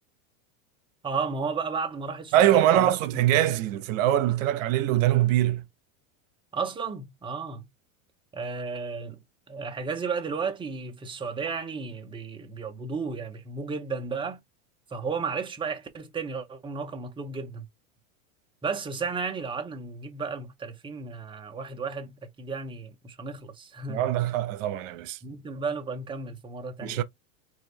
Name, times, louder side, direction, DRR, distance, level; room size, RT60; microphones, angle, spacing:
voice 1, 1.0-2.9 6.5-7.7 8.3-9.2 9.5-14.4 14.9-17.7 18.6-24.1 25.2-27.0, right 5 dB, 10° right, 0.7 m, -33 dB
voice 2, 2.3-5.6 23.9-25.2 26.8-27.0, right 12 dB, 65° right, 1.0 m, -23 dB
4.6 x 2.6 x 3.3 m
supercardioid pair, 140°, 41 cm